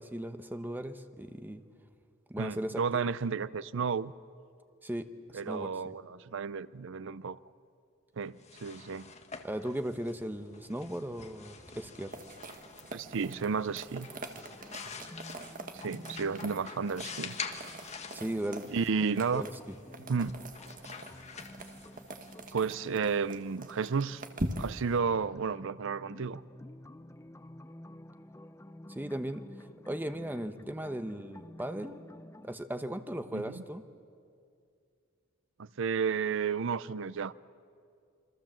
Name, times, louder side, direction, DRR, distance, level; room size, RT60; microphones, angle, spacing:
voice 1, 0.0-1.6 2.3-3.2 4.8-6.0 9.4-12.1 18.1-18.7 19.3-19.5 28.9-29.4 29.9-31.9 32.4-33.9, right 1 dB, 10° right, 1.0 m, -37 dB
voice 2, 2.4-4.1 5.3-7.4 8.2-9.1 12.9-14.1 15.7-17.4 18.7-19.4 20.1-20.4 22.5-24.2 24.6-26.4 33.3-33.6 35.6-37.3, right 5 dB, 65° right, 0.6 m, -32 dB
sound 1, 8.3-23.9, left 5 dB, 35° left, 1.6 m, -47 dB
sound 2, 12.1-25.0, right 1 dB, 40° right, 1.6 m, -44 dB
sound 3, 13.9-32.6, left 1 dB, 15° left, 0.6 m, -52 dB
27.0 x 24.5 x 7.6 m
head